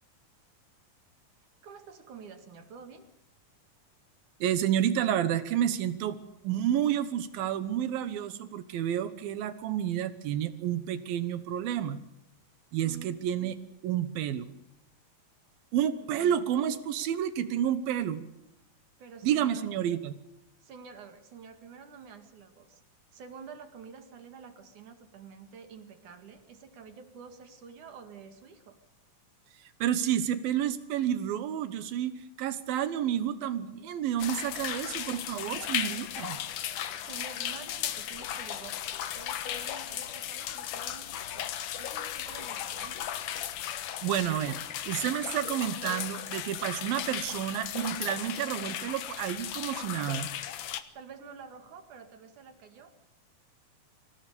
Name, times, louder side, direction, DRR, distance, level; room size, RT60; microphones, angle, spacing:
voice 1, 1.6-3.1 12.8-13.2 16.1-16.3 19.0-19.7 20.6-22.8 23.1-28.8 37.0-38.9 39.1-41.5 41.8-43.1 50.9-52.9, right 6 dB, 60° right, 7 dB, 3.4 m, -48 dB
voice 2, 4.4-6.2 6.4-12.0 12.7-13.6 13.8-14.5 15.7-18.2 19.2-20.2 29.6-36.4 44.0-50.3, right 10 dB, 85° right, 12 dB, 2.9 m, -30 dB
sound 1, 34.2-50.8, left 11 dB, 70° left, 2.6 m, -36 dB
26.5 x 17.5 x 6.9 m, 0.87 s
omnidirectional pair, 4.1 m